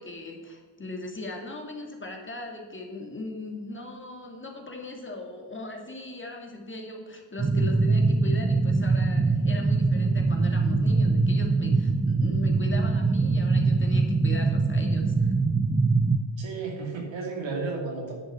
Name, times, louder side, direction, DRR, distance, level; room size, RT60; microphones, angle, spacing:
voice 1, 0.0-15.4, left 2 dB, 25° left, 1 dB, 1.8 m, -39 dB
sound 1, 7.4-16.2, right 3 dB, 15° right, 0.4 m, -23 dB
voice 2, 16.4-18.1, right 4 dB, 70° right, 0 dB, 2.7 m, -33 dB
10.0 x 6.6 x 5.4 m, 1.5 s
cardioid pair, 95°, 46 cm